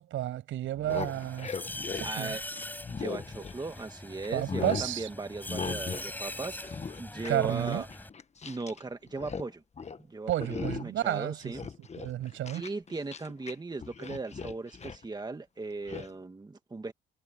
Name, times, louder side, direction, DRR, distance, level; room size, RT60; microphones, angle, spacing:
voice 1, 0.0-1.5 1.9-2.4 4.3-5.1 7.3-7.8 10.3-11.4 12.0-12.7, right 13 dB, 80° right, 7.4 m, -31 dB
sound 1, 0.7-3.9 4.2-4.9 5.5-6.1 6.4-8.8 9.1-9.5 9.8-10.0 10.4-11.0 11.4-13.5 13.8-15.0 15.9-16.1, left 5 dB, 35° left, 1.5 m, -38 dB
sound 2, 0.9-8.1, left 1 dB, 10° left, 7.9 m, -42 dB
voice 2, 2.0-2.4 2.9-7.9 8.5-9.6 10.0-11.6 12.5-16.9, right 3 dB, 20° right, 1.8 m, -38 dB
cardioid pair, 90°, 20 cm